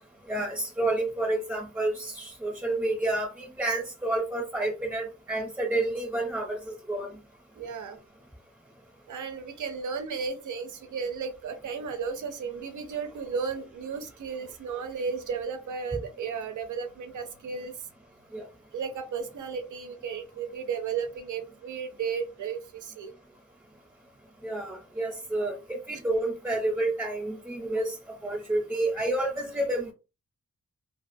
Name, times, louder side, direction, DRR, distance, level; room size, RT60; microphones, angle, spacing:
voice 1, 0.3-7.1 18.3-18.4 24.4-28.0 28.2-29.9, right 2 dB, 10° right, 0.6 m, -29 dB
voice 2, 7.5-8.0 9.1-17.9 18.7-23.1 25.9-26.0, right 6 dB, 85° right, 0.6 m, -34 dB
2.4 x 2.3 x 2.6 m
wide cardioid pair, 120°, 30 cm